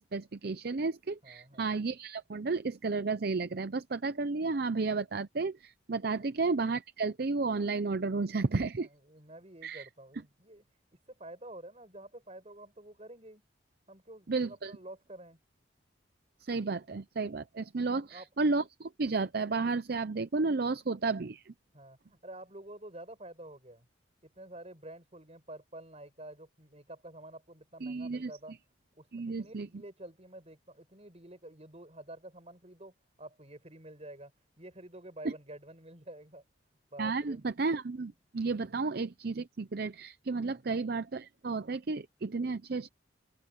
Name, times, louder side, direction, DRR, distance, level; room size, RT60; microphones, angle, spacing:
voice 1, 0.0-8.9 9.6-9.9 14.3-14.8 16.4-21.5 27.8-28.3 29.1-29.7 35.2-35.3 37.0-42.9, right 3 dB, 55° right, 0.6 m, -32 dB
voice 2, 1.2-1.7 6.1-6.3 8.8-10.6 11.1-13.4 13.9-15.4 17.9-18.3 21.7-23.9 24.2-28.6 29.0-34.3 34.6-36.4 36.9-37.5 40.4-40.6, right 1 dB, 35° right, 7.2 m, -49 dB
open air
head